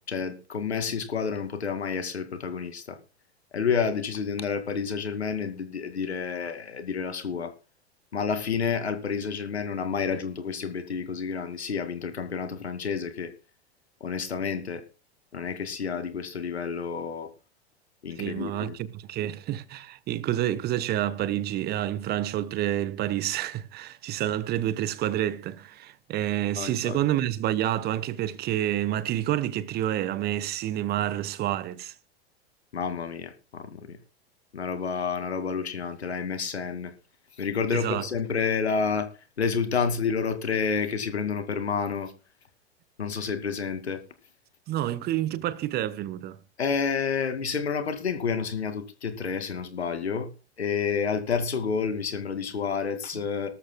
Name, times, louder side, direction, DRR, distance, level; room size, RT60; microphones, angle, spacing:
voice 1, 0.0-3.0 3.5-7.5 8.1-13.3 14.0-14.8 15.3-17.3 18.0-18.8 26.6-27.0 32.7-34.0 34.5-36.9 37.4-39.1 39.4-42.1 43.0-44.0 46.6-50.3 50.6-53.5, left 6 dB, 75° left, 2.4 m, -29 dB
voice 2, 18.2-31.9 37.7-38.0 44.7-46.4, right 12 dB, 30° right, 1.1 m, -28 dB
19.5 x 13.5 x 2.3 m
figure-of-eight pair, 95°, 33 cm